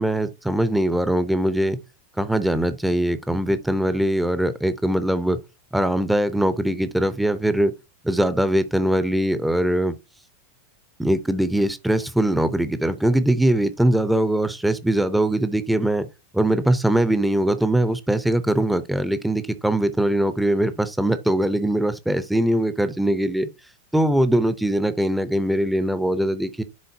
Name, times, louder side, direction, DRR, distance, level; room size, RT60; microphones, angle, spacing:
voice 1, 0.0-1.8 2.2-5.4 5.7-7.7 8.0-10.0 11.0-16.1 16.3-23.5 23.9-26.6, right 1 dB, 5° right, 0.7 m, -21 dB
10.5 x 3.8 x 2.7 m
figure-of-eight pair, 90°, 0 cm